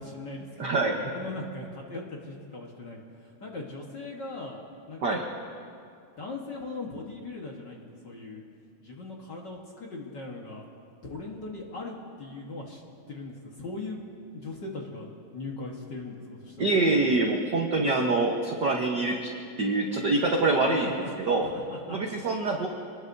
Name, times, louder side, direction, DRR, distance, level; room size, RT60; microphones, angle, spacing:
voice 1, 0.0-4.6 4.9-5.2 6.2-8.4 8.8-10.6 11.0-12.8 13.1-14.0 14.3-17.0 20.8-21.1 21.4-22.0, left 2 dB, 50° left, -1 dB, 1.5 m, -39 dB
voice 2, 0.6-1.0 5.0-5.2 16.6-19.3 19.6-20.9 21.2-21.5 21.9-22.7, right 3 dB, 75° right, 0 dB, 0.9 m, -25 dB
26.5 x 20.0 x 2.7 m, 2.4 s
omnidirectional pair, 3.5 m